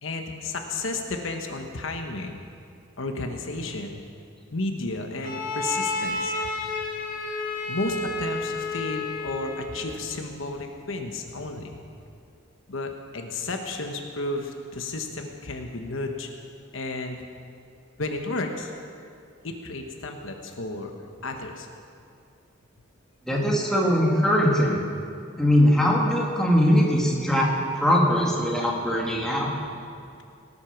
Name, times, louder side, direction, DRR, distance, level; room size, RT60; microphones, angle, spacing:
voice 1, 0.0-2.4 3.0-4.0 4.5-11.8 12.7-16.3 16.7-17.2 18.0-18.7 19.4-21.7, left 2 dB, 70° left, 4 dB, 1.1 m, -33 dB
Bowed string instrument, 5.2-9.8, left 2 dB, 45° left, 1.7 m, -31 dB
voice 2, 23.3-24.9 25.4-27.5 27.8-29.5, equal, 5° left, -3 dB, 1.9 m, -21 dB
18.5 x 8.4 x 5.9 m, 2.4 s
head